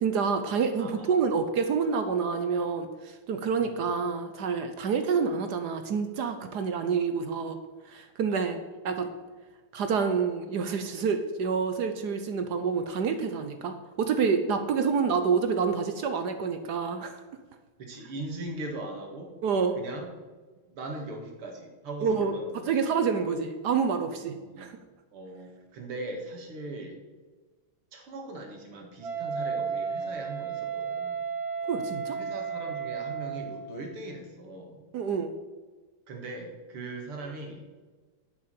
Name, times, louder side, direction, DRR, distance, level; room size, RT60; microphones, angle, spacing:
voice 1, 0.0-7.6 7.9-8.6 8.8-9.1 9.7-17.2 19.4-19.8 22.0-24.8 31.6-32.2 34.9-35.3, right 5 dB, 60° right, 8 dB, 1.1 m, -28 dB
voice 2, 0.8-1.2 3.6-3.8 14.9-15.4 17.8-19.3 19.8-20.1 20.7-22.7 24.2-24.7 25.1-27.0 27.9-31.3 32.2-34.8 36.1-37.6, right 2 dB, 90° right, 2 dB, 2.7 m, -40 dB
Wind instrument woodwind instrument, 29.0-33.7, right 6 dB, 40° right, 1.1 m, -33 dB
8.7 x 7.0 x 7.6 m, 1.3 s
omnidirectional pair, 2.4 m